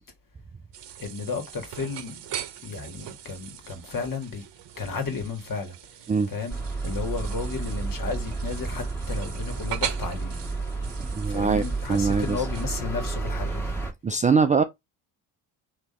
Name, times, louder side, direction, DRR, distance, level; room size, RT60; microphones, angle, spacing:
sound 1, 0.7-12.7, right 11 dB, 60° right, 0.8 m, -40 dB
voice 1, 1.0-4.4 4.8-6.6 6.8-10.4 11.2-13.7, left 4 dB, 45° left, 1.9 m, -33 dB
sound 2, 6.5-13.9, right 3 dB, 5° left, 1.7 m, -31 dB
voice 2, 11.1-11.6 11.9-12.4 14.0-14.6, right 5 dB, 20° right, 0.3 m, -22 dB
3.6 x 3.0 x 4.3 m
supercardioid pair, 75°, 47 cm